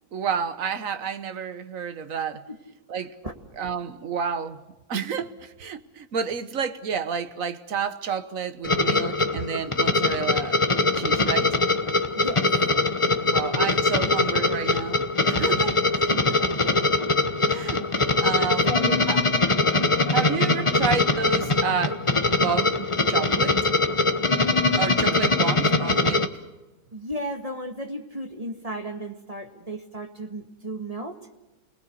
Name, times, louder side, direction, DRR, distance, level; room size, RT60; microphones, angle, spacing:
voice 1, 0.1-2.4 2.9-3.1 3.6-4.6 4.9-10.6 10.9-11.6 13.2-15.8 17.5-18.7 19.1-19.2 20.1-22.0 22.4-23.5 24.7-26.3, right 6 dB, 60° right, 1.5 m, -30 dB
sound 1, 8.6-26.3, left 3 dB, 25° left, 0.9 m, -22 dB
voice 2, 12.1-12.5 13.1-13.2 16.1-16.4 18.4-19.0 26.9-31.2, equal, 25° right, 1.7 m, -34 dB
30.0 x 20.0 x 6.7 m
omnidirectional pair, 1.7 m